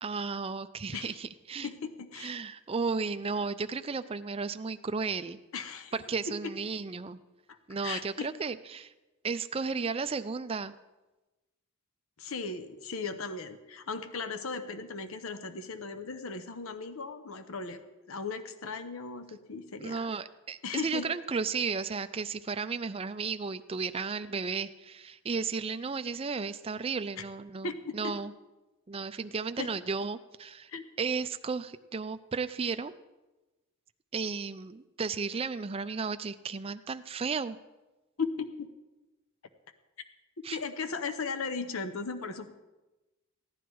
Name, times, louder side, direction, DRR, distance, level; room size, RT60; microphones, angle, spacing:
voice 1, 0.0-1.7 2.2-5.4 5.9-7.2 7.7-8.9 9.2-10.7 19.8-28.3 28.9-30.7 31.0-32.9 34.1-37.6 40.4-40.6, right 5 dB, 25° right, 11 dB, 0.4 m, -34 dB
voice 2, 1.6-2.4 5.5-5.9 6.4-6.5 7.5-7.6 7.8-8.3 12.2-20.1 20.6-21.0 27.6-28.1 29.6-29.7 30.7-30.8 38.2-38.7 40.5-42.5, left 4 dB, 65° left, 9 dB, 0.8 m, -37 dB
15.5 x 10.0 x 4.6 m, 1.1 s
head